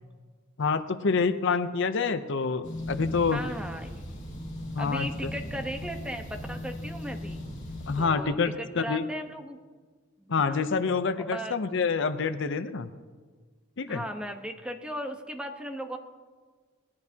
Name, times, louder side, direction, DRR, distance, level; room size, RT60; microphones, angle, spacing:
voice 1, 0.6-3.4 4.7-5.3 7.9-9.1 10.3-12.9 13.8-14.0, left 5 dB, 65° left, 11 dB, 0.6 m, -27 dB
sound 1, 2.6-8.1, left 1 dB, 35° left, 2.5 m, -37 dB
voice 2, 3.3-4.0 4.8-7.4 7.9-9.6 10.2-10.6 11.3-11.5 13.9-16.0, equal, 5° right, 5 dB, 1.0 m, -37 dB
20.0 x 14.5 x 2.8 m, 1.5 s
head